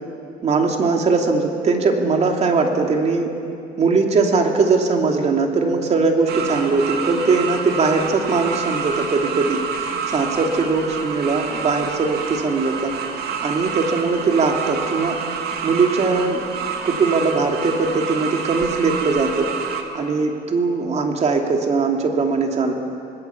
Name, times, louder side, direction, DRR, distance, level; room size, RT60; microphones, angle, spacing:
voice 1, 0.4-3.3 3.8-12.9 13.4-15.2 15.6-16.5 16.8-19.5 19.9-22.7, right 4 dB, 40° right, 3 dB, 2.8 m, -20 dB
sound 1, 6.3-19.8, right 6 dB, 70° right, 2.2 m, -28 dB
27.0 x 19.0 x 7.1 m, 2.7 s
cardioid pair, 110°, 17 cm